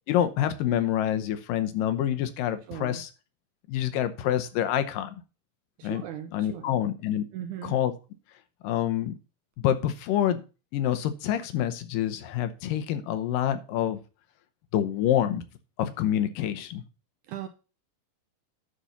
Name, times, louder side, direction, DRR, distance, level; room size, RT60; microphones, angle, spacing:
voice 1, 0.1-3.1 3.7-5.2 5.8-6.0 6.3-7.3 7.6-7.9 8.6-9.1 9.6-10.4 10.7-14.0 14.7-15.4 15.8-16.8, left 11 dB, 75° left, 11 dB, 2.5 m, -27 dB
voice 2, 2.7-3.0 5.8-6.8 7.3-7.8 17.3-17.5, right 10 dB, 75° right, 8 dB, 1.8 m, -38 dB
11.5 x 4.3 x 5.6 m, 0.32 s
omnidirectional pair, 4.1 m